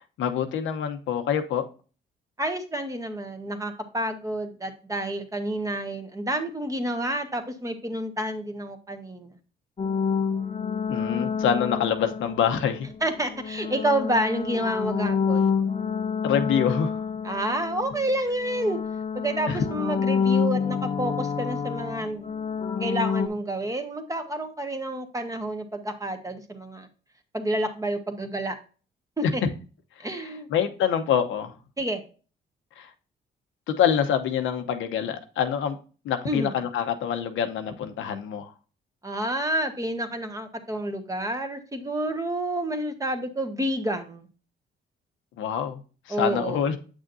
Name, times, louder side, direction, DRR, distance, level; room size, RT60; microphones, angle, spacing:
voice 1, 0.2-1.6 10.9-12.9 16.2-17.0 19.5-19.6 29.2-29.5 30.0-31.5 32.8-32.9 33.7-35.8 36.0-38.5 45.4-45.8 46.1-46.8, left 8 dB, 80° left, 0.9 m, -26 dB
voice 2, 2.4-9.3 13.0-15.6 17.2-18.8 19.1-22.3 22.8-26.9 27.3-28.6 29.2-29.4 30.0-30.5 31.8-32.0 36.2-36.5 39.0-44.3 46.1-46.6, right 1 dB, 15° right, 1.3 m, -29 dB
sound 1, 9.8-12.7 13.4-18.2 18.4-23.3, left 6 dB, 30° left, 0.7 m, -28 dB
7.9 x 6.3 x 2.6 m
cardioid pair, 90°, 20 cm